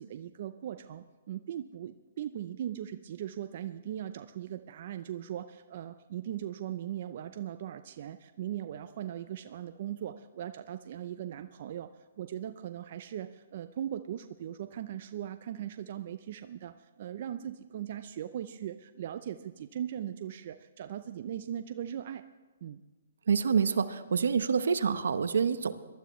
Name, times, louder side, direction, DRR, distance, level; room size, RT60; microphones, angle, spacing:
voice 1, 0.0-11.9 12.2-22.2 22.6-22.8, right 10 dB, 50° right, 10 dB, 0.5 m, -39 dB
voice 2, 23.3-25.7, right 6 dB, 80° right, 12 dB, 0.8 m, -27 dB
22.5 x 12.0 x 3.1 m, 1.3 s
hypercardioid pair, 150°, 0 cm